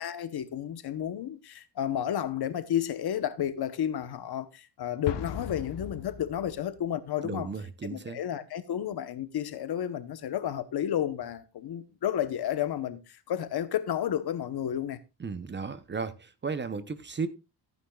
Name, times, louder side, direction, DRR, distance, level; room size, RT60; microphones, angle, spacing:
voice 1, 0.0-7.5 7.9-15.0, left 10 dB, 65° left, 1.0 m, -32 dB
Explosion, 5.1-6.8, left 8 dB, 90° left, 1.3 m, -37 dB
voice 2, 7.2-8.2 15.2-17.3, right 5 dB, 25° right, 0.7 m, -35 dB
14.5 x 9.4 x 2.3 m
cardioid pair, 130°, 42 cm